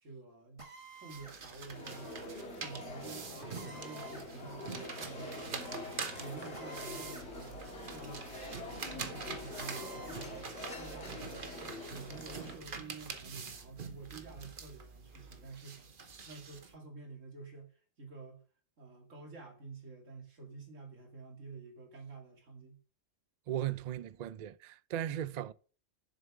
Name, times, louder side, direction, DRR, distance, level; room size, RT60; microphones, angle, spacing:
voice 1, 0.0-2.3 2.5-5.9 6.2-8.6 8.9-15.9 16.2-18.4 18.8-22.8, right 4 dB, 90° right, 2.5 m, -49 dB
Drill, 0.6-1.4 3.5-4.3 6.5-7.3 7.7-7.8 9.6-10.3, right 4 dB, 25° right, 1.6 m, -51 dB
sound 1, 1.1-16.7, right 5 dB, 45° right, 1.1 m, -45 dB
sound 2, 1.7-12.6, left 2 dB, 60° left, 2.0 m, -45 dB
voice 2, 23.5-25.5, right 11 dB, 70° right, 0.4 m, -37 dB
7.3 x 6.8 x 5.9 m
omnidirectional pair, 1.3 m